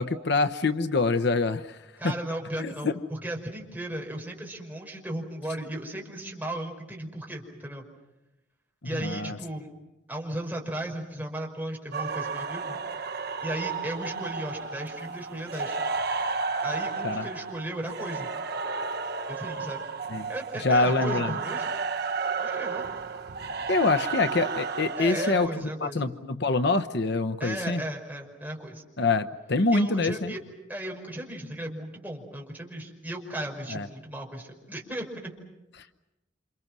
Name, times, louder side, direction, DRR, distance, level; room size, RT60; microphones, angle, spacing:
voice 1, 0.0-2.2 2.6-3.0 8.9-9.4 17.0-17.3 20.1-20.3 20.6-21.4 23.7-27.8 29.0-30.3 33.7-33.9 35.8-35.9, left 3 dB, 60° left, 10 dB, 1.0 m, -26 dB
voice 2, 2.0-7.8 8.8-9.7 10.1-12.8 13.4-15.8 16.6-18.3 19.3-19.8 20.3-21.7 22.4-22.9 25.0-26.0 27.4-28.8 29.7-30.4 30.7-35.3, right 1 dB, 10° right, 0 dB, 5.4 m, -36 dB
sound 1, 11.9-25.5, right 4 dB, 55° right, 1.1 m, -32 dB
29.0 x 28.0 x 6.2 m, 0.97 s
head